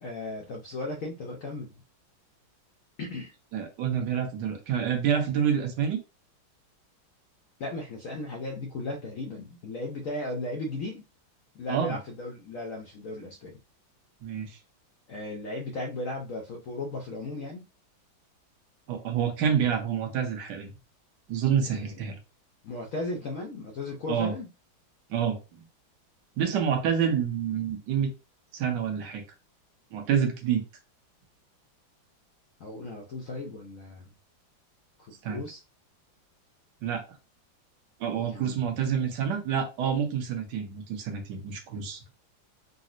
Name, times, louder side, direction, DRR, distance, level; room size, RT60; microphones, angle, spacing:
voice 1, 0.0-1.7 3.0-3.3 7.6-11.1 11.5-13.6 15.1-17.6 21.7-22.0 22.6-24.5 32.6-34.1 35.0-35.6 38.1-38.6, left 2 dB, 85° left, 0.7 m, -36 dB
voice 2, 3.5-6.0 11.7-12.0 14.2-14.5 18.9-20.7 21.3-22.2 24.1-24.3 25.1-25.4 26.4-28.1 28.5-29.2 29.9-30.6 35.2-35.4 36.8-37.0 38.0-42.0, right 8 dB, 65° right, 1.4 m, -27 dB
3.9 x 2.0 x 2.5 m
omnidirectional pair, 2.1 m